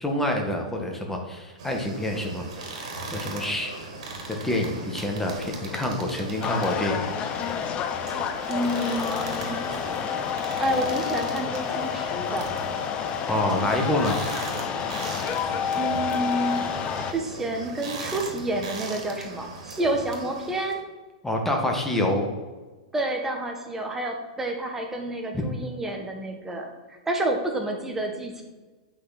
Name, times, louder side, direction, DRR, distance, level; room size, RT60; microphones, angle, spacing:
voice 1, 0.0-3.7 4.4-7.1 13.3-14.2 21.2-22.3 25.3-25.4, left 1 dB, 5° left, 1 dB, 1.6 m, -27 dB
sound 1, 1.6-20.7, right 3 dB, 70° right, 2.2 m, -38 dB
sound 2, 6.4-17.1, left 8 dB, 30° left, 0.7 m, -29 dB
voice 2, 8.5-9.6 10.6-12.5 15.7-16.6 17.1-20.8 22.9-28.4, right 1 dB, 10° right, 2 dB, 1.5 m, -29 dB
8.2 x 5.9 x 4.2 m, 1.3 s
hypercardioid pair, 120°, 4 cm